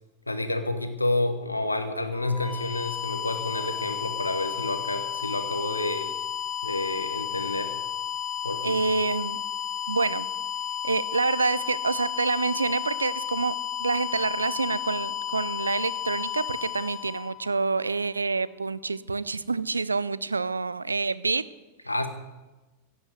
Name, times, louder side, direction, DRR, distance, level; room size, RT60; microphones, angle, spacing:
voice 1, 0.3-6.1 6.6-7.7 8.4-8.8 21.9-22.1, left 2 dB, 85° left, 9 dB, 1.1 m, -29 dB
sound 1, 2.1-17.9, left 9 dB, 20° left, 2.1 m, -33 dB
voice 2, 8.6-9.4 9.9-10.3 10.8-21.5, right 4 dB, 80° right, 18 dB, 0.4 m, -27 dB
16.0 x 5.5 x 7.9 m, 1.1 s
figure-of-eight pair, 90°, 0 cm